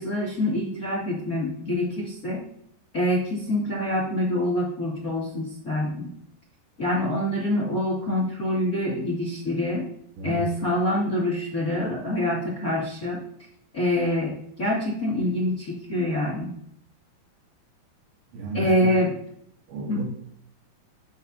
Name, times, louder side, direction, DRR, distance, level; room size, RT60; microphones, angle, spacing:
voice 1, 0.0-2.4 2.9-6.1 6.8-9.9 10.2-13.2 13.7-16.5 18.5-19.1 19.9-20.0, left 1 dB, 30° left, -4 dB, 1.7 m, -26 dB
voice 2, 18.3-18.9 19.7-20.0, right 2 dB, 85° right, -1 dB, 4.3 m, -32 dB
10.5 x 8.0 x 2.7 m, 0.71 s
omnidirectional pair, 5.0 m